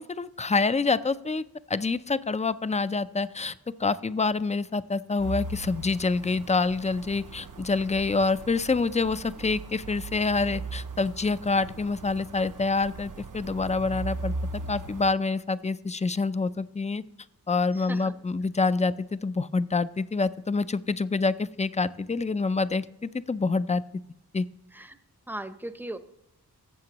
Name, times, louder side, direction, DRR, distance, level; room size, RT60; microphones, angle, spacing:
voice 1, 0.0-3.5 3.8-14.3 14.7-17.0 17.5-23.8 24.3-24.5, left 3 dB, 20° left, 15 dB, 0.3 m, -27 dB
sound 1, 5.2-15.1, right 3 dB, 55° right, 0.6 m, -38 dB
voice 2, 17.7-18.1 24.7-25.0 25.3-26.0, right 1 dB, 5° right, 10 dB, 0.7 m, -37 dB
13.5 x 7.5 x 2.9 m, 0.82 s
wide cardioid pair, 60°, 37 cm